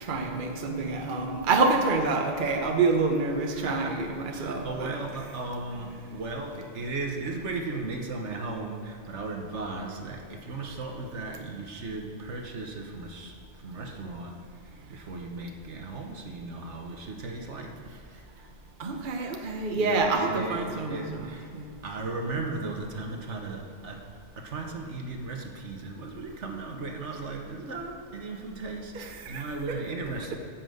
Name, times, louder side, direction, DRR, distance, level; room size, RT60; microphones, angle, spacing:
voice 1, 0.1-5.0 18.8-21.3 21.5-21.7 28.9-29.8, right 3 dB, 45° right, 3 dB, 1.0 m, -27 dB
voice 2, 3.5-4.0 4.3-14.4 14.7-18.2 19.7-21.5 21.8-24.1 24.4-30.4, right 3 dB, 70° right, 3 dB, 1.4 m, -36 dB
10.5 x 5.8 x 7.7 m, 2.4 s
omnidirectional pair, 1.3 m